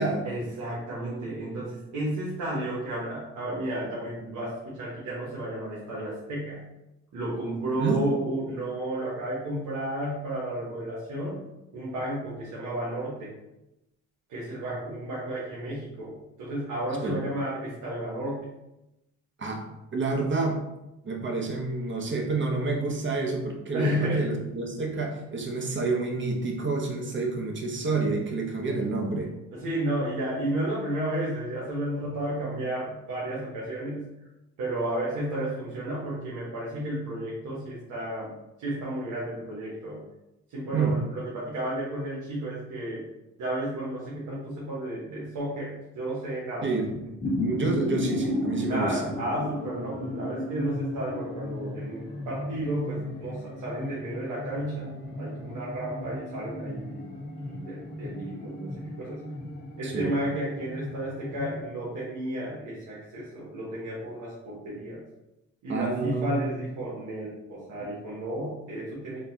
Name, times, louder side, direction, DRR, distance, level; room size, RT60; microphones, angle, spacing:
voice 1, 0.2-6.6 7.1-11.5 11.7-13.3 14.3-18.5 23.7-24.4 29.5-34.1 34.6-38.3 38.6-40.0 40.5-43.0 43.4-46.7 48.7-59.2 59.8-65.0 65.6-69.2, right 1 dB, 85° right, -7 dB, 1.3 m, -32 dB
voice 2, 7.8-8.1 17.0-17.2 19.4-19.6 19.9-20.6 21.0-29.3 40.7-41.0 46.6-46.9 47.4-49.1 59.8-60.1 65.7-66.3, right 3 dB, 40° right, 1 dB, 0.9 m, -28 dB
sound 1, 46.8-61.6, left 1 dB, 35° left, 1.1 m, -35 dB
4.0 x 2.3 x 4.0 m, 0.92 s
cardioid pair, 90°, 30 cm